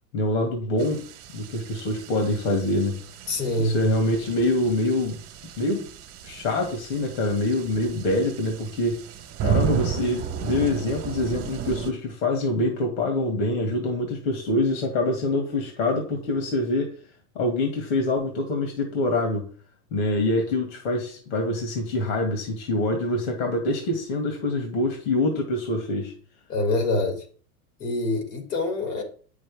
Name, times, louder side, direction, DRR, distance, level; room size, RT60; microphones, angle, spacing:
voice 1, 0.1-1.0 1.3-3.0 3.6-5.2 5.6-5.8 6.2-9.0 9.4-17.0 17.4-19.4 19.9-26.1, left 2 dB, 60° left, 2.3 m, -25 dB
sound 1, 0.8-11.9, right 8 dB, 30° right, 1.5 m, -33 dB
voice 2, 3.3-3.8 26.5-27.2 27.8-29.0, left 2 dB, 75° left, 3.2 m, -25 dB
8.9 x 6.4 x 3.6 m
hypercardioid pair, 110°, 47 cm